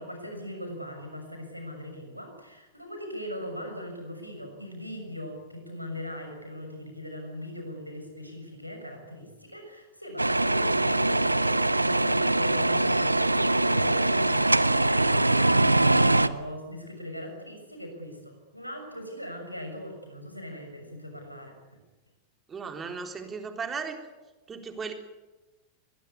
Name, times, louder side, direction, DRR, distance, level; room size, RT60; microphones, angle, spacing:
voice 1, 0.0-21.8, equal, 90° left, 3 dB, 6.6 m, -40 dB
sound 1, 10.2-16.3, right 2 dB, 85° right, 0.8 m, -23 dB
voice 2, 22.5-24.0 24.5-24.9, right 5 dB, 20° right, 5 dB, 3.7 m, -36 dB
25.5 x 20.5 x 8.4 m, 1.1 s
figure-of-eight pair, 90°, 0 cm